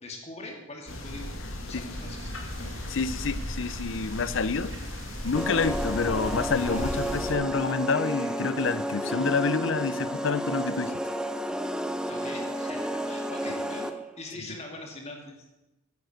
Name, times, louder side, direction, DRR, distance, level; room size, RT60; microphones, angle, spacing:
voice 1, 0.0-1.3 1.6-2.3 12.1-13.9 14.2-15.6, left 2 dB, 30° left, 1 dB, 2.4 m, -42 dB
sound 1, 0.9-7.3, left 1 dB, 85° left, 2.2 m, -36 dB
sound 2, 1.9-7.2, right 3 dB, 65° right, 1.6 m, -49 dB
voice 2, 2.9-4.8 5.2-10.9, left 4 dB, 70° left, 15 dB, 0.6 m, -28 dB
sound 3, 5.3-14.1, equal, 5° right, 0.6 m, -31 dB
9.7 x 9.3 x 7.8 m, 1.0 s
head